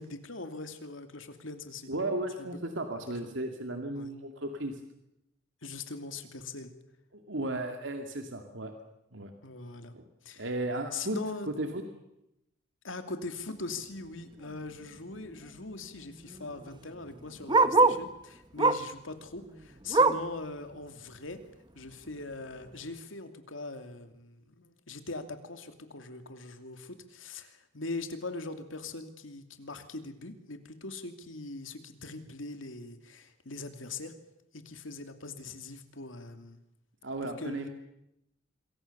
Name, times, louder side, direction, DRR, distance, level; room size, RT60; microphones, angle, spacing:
voice 1, 0.0-1.9 2.4-2.5 3.9-4.1 5.6-6.7 9.4-10.0 10.2-10.4 10.9-11.5 12.8-21.4 21.7-34.1 34.5-36.6 37.2-37.7, left 3 dB, 85° left, 7 dB, 2.7 m, -41 dB
voice 2, 1.9-4.8 7.1-8.7 9.1-9.3 9.9-10.0 10.4-11.2 11.6-11.8 37.0-37.7, right 2 dB, 75° right, 5 dB, 2.3 m, -35 dB
Bark, 14.4-14.6 15.0-15.1 15.3-18.1 18.6-19.0 19.4-20.4 20.8-20.9 21.3-21.4 22.1-22.2, right 3 dB, 25° right, 0.9 m, -26 dB
26.5 x 23.0 x 7.0 m, 0.85 s
head